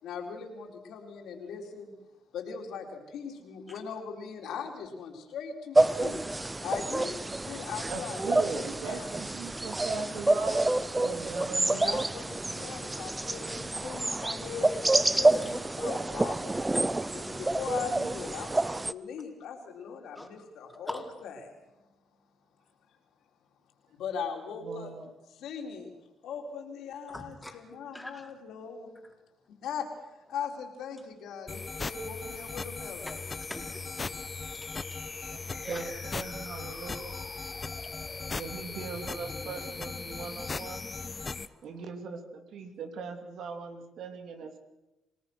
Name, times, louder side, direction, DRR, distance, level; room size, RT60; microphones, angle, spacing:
voice 1, 0.0-1.9 2.3-6.2 6.6-9.1 11.7-16.6 17.1-21.6 23.9-24.9 25.3-25.9 26.2-29.0 29.6-33.2, left 6 dB, 80° left, 2 dB, 4.3 m, -40 dB
sound 1, 5.8-18.9, right 2 dB, 15° right, 0.8 m, -28 dB
voice 2, 7.8-12.0 24.6-25.0 35.2-37.2 38.3-40.8 41.6-44.6, right 4 dB, 70° right, 6 dB, 3.1 m, -39 dB
voice 3, 27.1-27.6 27.9-28.3 33.1-34.2 34.5-35.1 35.6-35.9 41.2-41.8, left 1 dB, 10° left, 2 dB, 4.3 m, -44 dB
sound 2, 31.5-41.5, left 4 dB, 30° left, 0.9 m, -38 dB
28.0 x 18.0 x 6.4 m, 0.99 s
cardioid pair, 90°, 0 cm